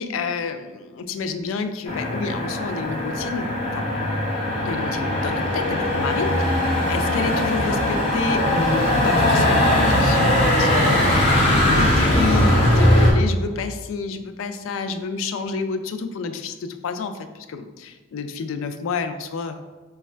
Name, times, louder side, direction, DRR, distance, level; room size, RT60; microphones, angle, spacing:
voice 1, 0.0-3.9 4.6-19.7, left 4 dB, 85° left, 9 dB, 0.3 m, -29 dB
Motor vehicle (road), 1.9-13.1, left 1 dB, 30° left, 0.9 m, -20 dB
3.1 x 2.3 x 4.2 m, 1.3 s
head